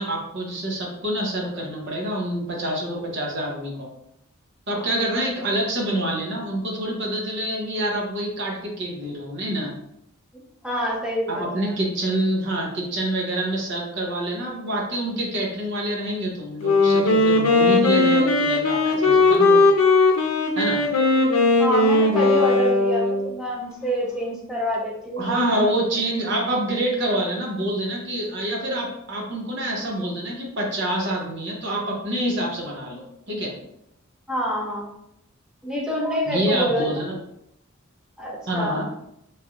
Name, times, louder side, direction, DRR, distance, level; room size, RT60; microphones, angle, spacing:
voice 1, 0.0-3.9 4.7-9.7 11.3-19.6 20.6-20.8 25.2-33.5 36.3-37.2 38.5-38.8, right 1 dB, 55° right, -2 dB, 0.8 m, -26 dB
voice 2, 4.7-5.2 10.6-11.7 21.0-21.3 21.6-25.4 34.3-34.9 35.6-36.9 38.2-38.8, equal, 5° right, -3 dB, 0.6 m, -27 dB
Wind instrument woodwind instrument, 16.6-23.4, left 3 dB, 75° left, 0.6 m, -18 dB
3.2 x 2.5 x 2.9 m, 0.78 s
head